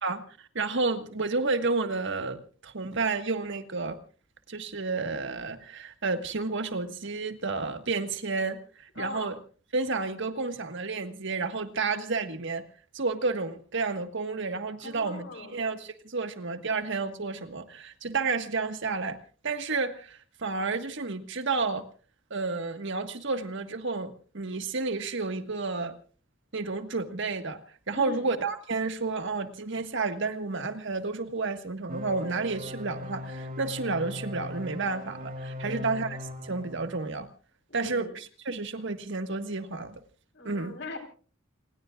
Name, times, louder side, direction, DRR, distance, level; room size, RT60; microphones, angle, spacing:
voice 1, 0.0-4.0 4.5-9.3 9.7-12.6 12.9-19.2 19.4-21.8 22.3-26.0 26.5-27.6 27.9-36.2 36.4-37.3 37.7-40.0 40.4-40.8, right 3 dB, 65° right, 8 dB, 1.6 m, -31 dB
voice 2, 8.9-9.4 14.8-15.6 27.9-28.3 35.6-36.0 37.7-38.2 40.3-41.0, left 3 dB, 65° left, 6 dB, 4.5 m, -40 dB
sound 1, 31.9-36.9, left 2 dB, 45° right, 2.6 m, -39 dB
29.0 x 20.5 x 2.4 m, 0.39 s
head